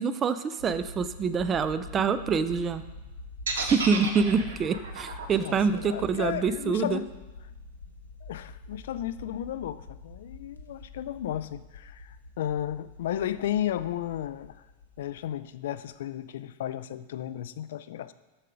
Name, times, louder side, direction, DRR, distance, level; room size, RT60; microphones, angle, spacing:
voice 1, 0.0-2.8 3.6-7.0, right 5 dB, 25° right, 12 dB, 0.4 m, -26 dB
sound 1, 0.6-16.2, left 3 dB, 75° left, 0.9 m, -46 dB
sound 2, 3.5-7.5, right 4 dB, 65° right, 1.0 m, -34 dB
voice 2, 5.4-7.1 8.2-14.6 15.0-18.1, left 11 dB, 55° left, 14 dB, 0.3 m, -34 dB
7.2 x 6.6 x 4.9 m, 1.1 s
figure-of-eight pair, 90°, 0 cm